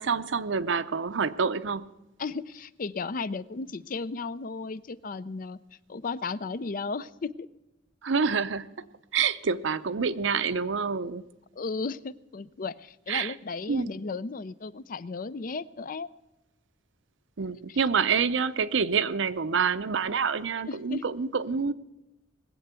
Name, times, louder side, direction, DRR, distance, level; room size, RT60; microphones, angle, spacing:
voice 1, 0.0-1.9 8.0-8.7 9.1-11.3 13.1-13.3 13.7-13.9 17.4-21.7, right 5 dB, 70° right, 14 dB, 0.6 m, -27 dB
voice 2, 2.2-5.6 5.9-7.5 11.6-16.1 17.7-17.8 20.7-21.0, left 4 dB, 45° left, 17 dB, 0.5 m, -35 dB
20.5 x 7.7 x 8.2 m, 0.99 s
head